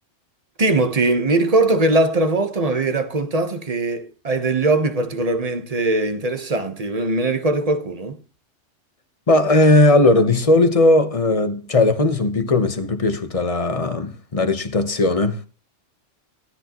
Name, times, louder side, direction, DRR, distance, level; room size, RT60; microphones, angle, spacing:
voice 1, 0.6-8.2, right 2 dB, 30° right, 1.2 m, -20 dB
voice 2, 9.3-15.5, left 2 dB, 30° left, 1.0 m, -17 dB
16.0 x 13.0 x 3.0 m
omnidirectional pair, 1.3 m